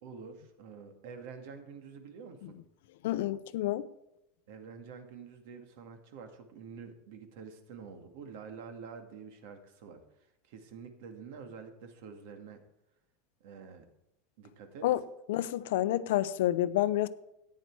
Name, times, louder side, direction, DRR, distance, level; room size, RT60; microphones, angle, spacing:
voice 1, 0.0-2.6 4.5-10.0 10.5-12.6 13.4-13.9 14.4-14.9, right 5 dB, 60° right, 2.1 m, -47 dB
voice 2, 3.0-3.9 14.8-15.0 15.3-17.1, left 14 dB, 75° left, 0.7 m, -29 dB
13.5 x 9.6 x 4.8 m
supercardioid pair, 170°, 0 cm